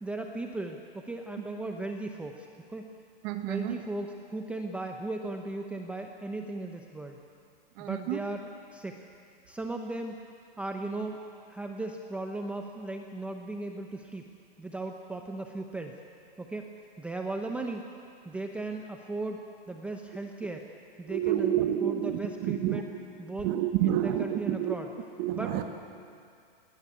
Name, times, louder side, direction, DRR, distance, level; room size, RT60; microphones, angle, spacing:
voice 1, 0.0-2.9 3.5-7.2 7.8-8.9 9.5-10.2 10.6-11.2 11.5-14.2 14.6-16.0 16.4-16.7 17.0-17.8 18.3-19.4 19.7-20.6 21.0-22.9 23.2-23.5 23.8-24.9 25.3-25.6, right 2 dB, 5° right, 3 dB, 0.8 m, -37 dB
voice 2, 3.2-3.7 7.8-8.2 21.1-22.8 23.4-24.7 25.2-25.6, right 12 dB, 35° right, 7 dB, 1.2 m, -29 dB
20.5 x 20.0 x 8.5 m, 2.4 s
hypercardioid pair, 140°, 29 cm